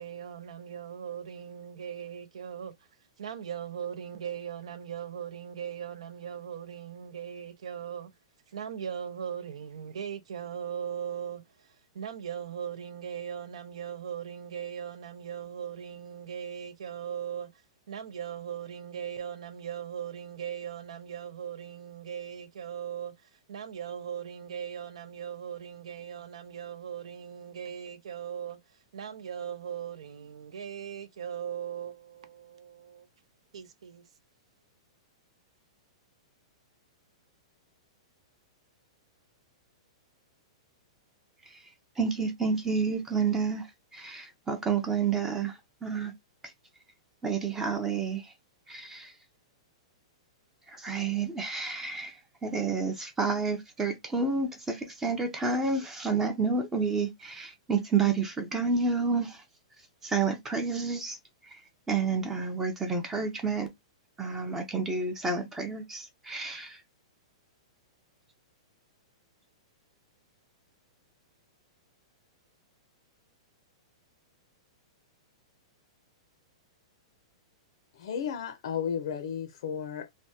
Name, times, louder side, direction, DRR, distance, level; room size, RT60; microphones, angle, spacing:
voice 1, 0.0-2.7 3.2-8.1 8.5-17.5 17.9-28.6 28.9-33.1 33.5-34.0, right 8 dB, 85° right, 0.5 m, -39 dB
voice 2, 42.0-43.7 43.9-46.1 47.2-48.3 48.7-49.1 50.7-52.1 52.4-59.4 60.0-61.2 61.9-63.7 64.2-66.8, right 5 dB, 10° right, 0.4 m, -29 dB
voice 3, 77.9-80.1, left 7 dB, 60° left, 0.5 m, -33 dB
3.3 x 2.1 x 2.7 m
hypercardioid pair, 160°, 3 cm